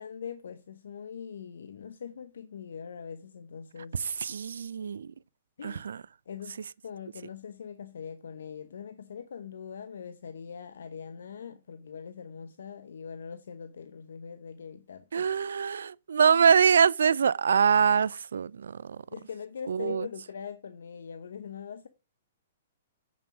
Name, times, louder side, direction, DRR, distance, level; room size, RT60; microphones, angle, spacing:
voice 1, 0.0-4.2 5.6-5.9 6.3-15.3 19.1-21.9, left 7 dB, 70° left, 0.9 m, -42 dB
voice 2, 3.9-5.1 5.6-6.0 15.1-19.0 19.7-20.1, right 6 dB, 75° right, 0.4 m, -24 dB
8.2 x 7.5 x 5.0 m
hypercardioid pair, 120°, 0 cm